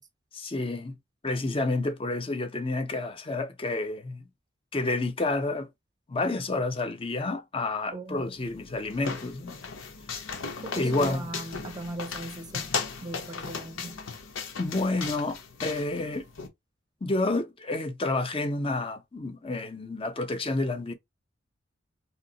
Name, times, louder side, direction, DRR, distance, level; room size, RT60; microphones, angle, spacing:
voice 1, 0.3-0.9 1.2-4.2 4.7-5.7 6.1-9.6 10.7-11.2 14.6-16.3 17.0-20.9, left 2 dB, 30° left, 0.5 m, -29 dB
voice 2, 7.9-8.2 10.6-14.0, right 2 dB, 20° right, 0.6 m, -39 dB
sound 1, 8.3-16.5, left 5 dB, 90° left, 0.8 m, -37 dB
2.7 x 2.0 x 3.8 m
head